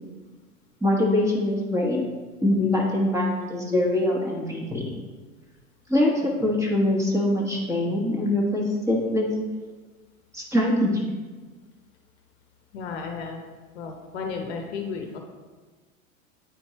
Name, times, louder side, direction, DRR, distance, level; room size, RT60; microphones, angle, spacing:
voice 1, 0.8-2.0 2.4-4.8 5.9-9.3 10.3-11.1, left 1 dB, 5° right, -2 dB, 1.3 m, -23 dB
voice 2, 12.7-13.4 13.7-15.2, left 5 dB, 50° left, 3 dB, 0.9 m, -33 dB
9.5 x 4.3 x 3.0 m, 1.4 s
figure-of-eight pair, 90°, 41 cm